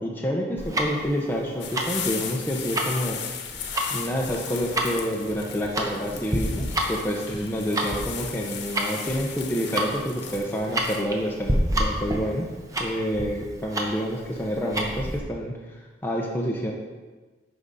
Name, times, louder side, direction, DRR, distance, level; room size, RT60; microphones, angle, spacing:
voice 1, 0.0-3.2 3.9-12.5 12.8-16.7, equal, 10° left, -2 dB, 0.8 m, -28 dB
Tick-tock, 0.6-15.2, right 1 dB, 20° right, 0.9 m, -29 dB
sound 1, 1.6-11.0, left 7 dB, 85° left, 1.0 m, -36 dB
11.0 x 4.9 x 4.1 m, 1.3 s
head